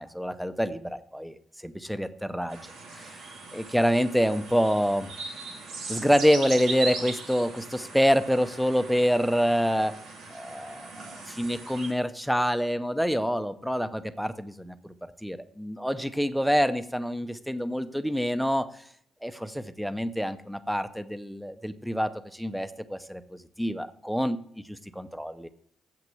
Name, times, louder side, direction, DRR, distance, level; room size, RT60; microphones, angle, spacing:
voice 1, 0.0-1.3 1.6-2.6 2.9-3.2 3.5-5.1 5.9-9.9 10.3-18.7 19.2-23.2 23.6-24.4 24.7-25.5, equal, ahead, 12 dB, 0.7 m, -27 dB
sound 1, 2.5-11.9, right 3 dB, 85° right, 2.4 m, -39 dB
7.8 x 5.9 x 7.8 m, 0.64 s
cardioid pair, 90°, 0 cm